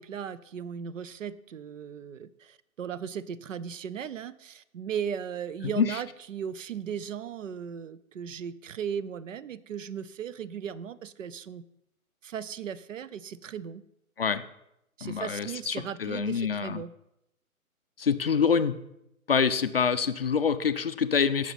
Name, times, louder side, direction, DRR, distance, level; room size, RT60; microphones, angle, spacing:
voice 1, 0.0-11.6 12.2-13.8 15.0-16.9, right 8 dB, 60° right, 18 dB, 0.6 m, -37 dB
voice 2, 5.6-6.0 14.2-14.4 15.0-16.8 18.0-18.7 19.3-21.5, left 6 dB, 45° left, 11 dB, 0.4 m, -26 dB
16.5 x 6.1 x 4.1 m, 0.83 s
hypercardioid pair, 155°, 43 cm